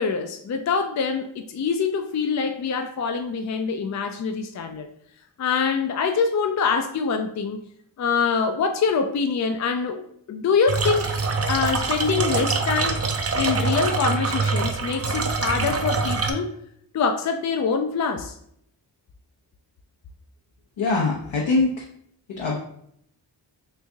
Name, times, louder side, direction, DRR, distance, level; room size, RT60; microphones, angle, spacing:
voice 1, 0.0-4.9 5.4-7.6 8.0-10.0 10.3-11.1 11.5-13.0 13.3-16.6 16.9-18.3, left 5 dB, 40° left, 5 dB, 0.4 m, -24 dB
sound 1, 10.7-16.3, right 4 dB, 35° right, 0.5 m, -24 dB
voice 2, 20.8-21.7 22.3-22.6, left 3 dB, 80° left, -3 dB, 0.8 m, -22 dB
3.2 x 2.6 x 3.4 m, 0.69 s
cardioid pair, 50°, 45 cm